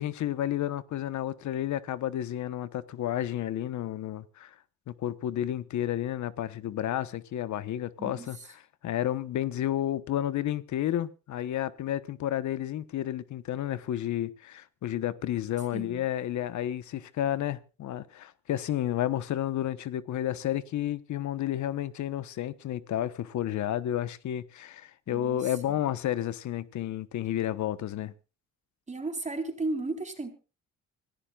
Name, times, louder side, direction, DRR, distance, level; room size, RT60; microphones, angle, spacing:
voice 1, 0.0-4.5 4.9-8.4 8.8-28.1, left 12 dB, 70° left, 1.2 m, -31 dB
voice 2, 8.0-8.5 15.7-16.0 25.1-25.8 28.9-30.3, right 2 dB, 25° right, 4.2 m, -35 dB
25.0 x 15.5 x 2.4 m
cardioid pair, 90°, 30 cm